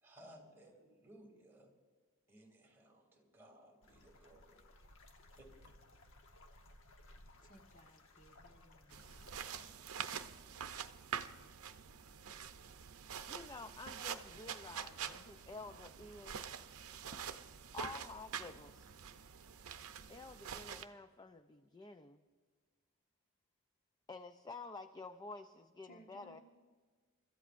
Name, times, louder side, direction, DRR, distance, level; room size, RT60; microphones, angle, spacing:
voice 1, 0.0-1.7 2.3-4.6 5.3-5.7, right 1 dB, 10° right, 0 dB, 2.5 m, -60 dB
sound 1, 3.8-9.7, left 1 dB, 65° left, 1.1 m, -60 dB
voice 2, 7.4-9.4 25.9-26.4, right 1 dB, 40° left, 2 dB, 1.3 m, -63 dB
sound 2, 8.9-20.8, right 7 dB, 75° right, 0.6 m, -46 dB
voice 3, 13.2-16.5 17.7-18.9 20.1-22.2 24.1-26.4, left 3 dB, 20° left, 9 dB, 0.4 m, -50 dB
29.5 x 14.0 x 2.5 m, 1.5 s
head